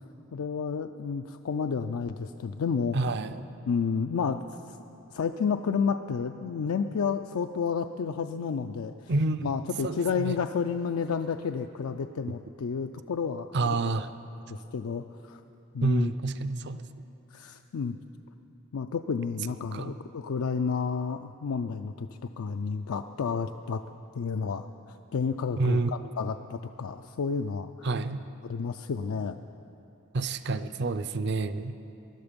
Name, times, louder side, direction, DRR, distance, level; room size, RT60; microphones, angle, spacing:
voice 1, 0.3-3.1 3.7-4.8 5.1-9.1 9.4-13.9 14.5-15.4 15.7-16.1 17.3-18.0 18.7-23.8 24.1-27.9 28.4-29.4, left 5 dB, 85° left, 7 dB, 0.4 m, -31 dB
voice 2, 2.9-3.4 9.1-9.5 9.8-10.4 13.5-14.1 15.8-16.8 19.7-20.0 25.6-26.1 27.8-28.3 30.1-31.8, right 3 dB, 55° right, 13 dB, 0.5 m, -28 dB
20.0 x 12.0 x 5.2 m, 2.8 s
head